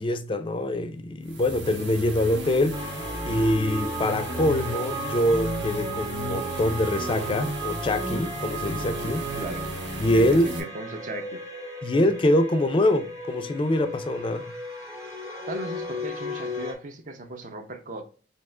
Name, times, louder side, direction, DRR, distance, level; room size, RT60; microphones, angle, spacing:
voice 1, 0.0-9.3 10.0-10.5 11.8-14.5, left 1 dB, 25° left, 0.4 m, -24 dB
sound 1, 1.2-10.6, equal, 75° right, 1.1 m, -34 dB
sound 2, 2.7-16.7, right 1 dB, 20° right, 0.9 m, -35 dB
voice 2, 9.4-9.7 10.1-10.2 10.6-11.4 15.5-18.0, right 2 dB, 45° right, 0.6 m, -37 dB
3.6 x 2.8 x 3.2 m
head